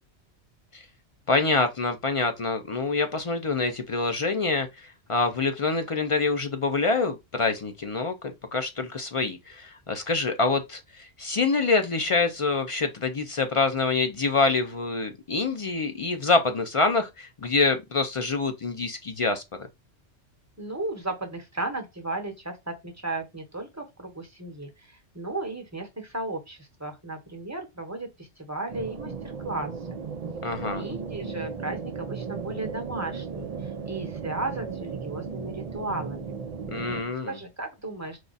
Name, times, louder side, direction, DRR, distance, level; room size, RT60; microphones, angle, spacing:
voice 1, 1.3-4.7 5.1-19.4 30.4-30.8 36.7-37.4, left 3 dB, 50° left, 0.4 m, -26 dB
voice 2, 20.6-29.1 29.4-30.0 30.6-36.4 37.2-38.2, right 2 dB, 15° right, 0.9 m, -35 dB
sound 1, 28.7-37.0, right 5 dB, 50° right, 0.5 m, -36 dB
4.8 x 2.3 x 4.0 m
omnidirectional pair, 1.2 m